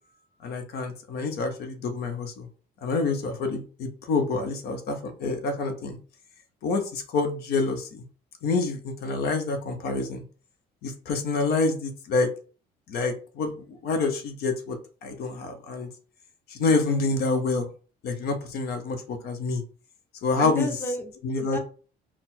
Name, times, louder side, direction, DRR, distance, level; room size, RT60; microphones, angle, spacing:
voice 1, 0.4-2.5 2.8-6.0 6.6-8.0 8.4-10.2 10.8-12.3 12.9-14.8 15.0-15.9 16.5-17.7 18.0-19.6 20.2-20.7 21.2-21.6, left 3 dB, 70° left, 7 dB, 0.8 m, -27 dB
voice 2, 16.6-17.1 20.4-21.6, left 1 dB, 10° left, 4 dB, 0.8 m, -34 dB
4.1 x 2.1 x 4.3 m, 0.37 s
cardioid pair, 110°, 17 cm